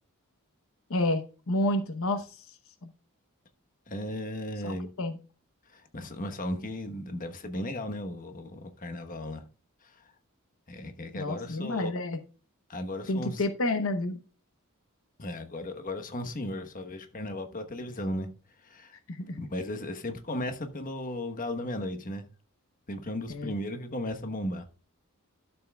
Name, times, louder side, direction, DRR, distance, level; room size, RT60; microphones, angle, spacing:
voice 1, 0.9-2.4 2.8-2.9 4.6-5.2 11.1-12.2 13.1-14.2 19.1-19.4 23.3-23.5, left 1 dB, 70° left, 0.9 m, -30 dB
voice 2, 3.9-4.9 5.7-9.5 9.8-10.1 10.7-12.0 12.7-13.4 15.2-18.3 18.6-19.0 19.3-22.2 22.9-24.7, left 1 dB, 40° left, 1.1 m, -36 dB
12.0 x 7.1 x 2.3 m
head